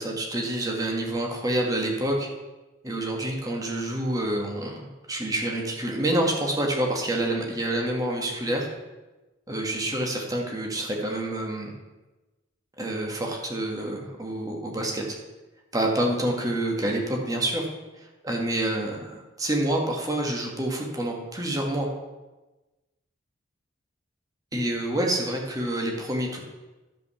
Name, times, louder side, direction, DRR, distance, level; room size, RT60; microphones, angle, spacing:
voice 1, 0.0-2.3 2.8-8.7 9.5-11.7 12.8-15.0 15.7-17.7 18.0-21.9 24.5-26.4, right 1 dB, 20° right, 0 dB, 1.8 m, -27 dB
12.0 x 5.4 x 7.0 m, 1.1 s
head